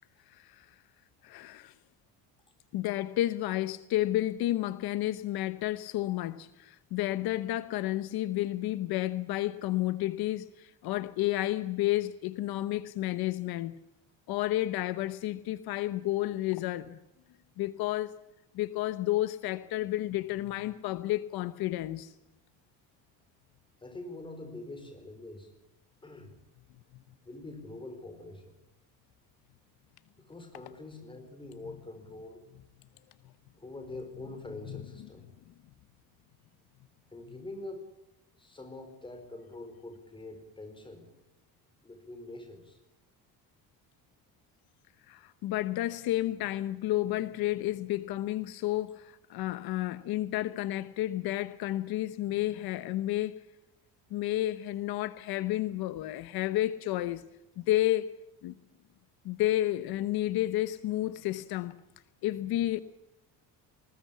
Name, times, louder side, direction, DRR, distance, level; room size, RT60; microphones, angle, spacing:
voice 1, 0.3-0.7 1.2-1.7 2.7-13.8 14.3-17.0 17.6-18.2 18.5-22.1 34.7-35.1 45.1-53.4 54.1-57.2 57.6-58.1 58.4-58.6 59.2-61.8 62.2-62.8, left 15 dB, 70° left, 1.0 m, -31 dB
voice 2, 23.8-25.5 26.0-26.3 27.2-28.5 30.2-32.4 33.6-35.3 37.1-37.9 38.4-41.1 41.8-42.8, left 2 dB, 15° left, 4.6 m, -44 dB
20.5 x 19.5 x 8.4 m
cardioid pair, 155°, 38 cm